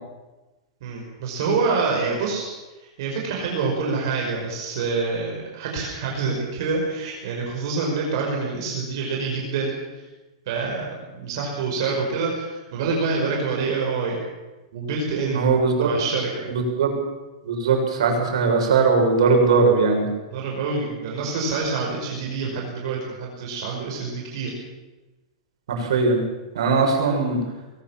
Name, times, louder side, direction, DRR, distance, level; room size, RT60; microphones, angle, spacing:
voice 1, 0.8-2.5 2.8-9.8 10.5-14.2 14.7-15.5 15.8-16.5 20.3-24.5 26.7-26.9, right 4 dB, 45° right, -1 dB, 5.7 m, -26 dB
voice 2, 15.3-15.9 16.5-16.9 17.4-20.1 25.7-26.2 26.5-27.4, right 4 dB, 70° right, 2 dB, 6.7 m, -19 dB
21.0 x 19.5 x 7.4 m, 1.1 s
supercardioid pair, 180°, 3 cm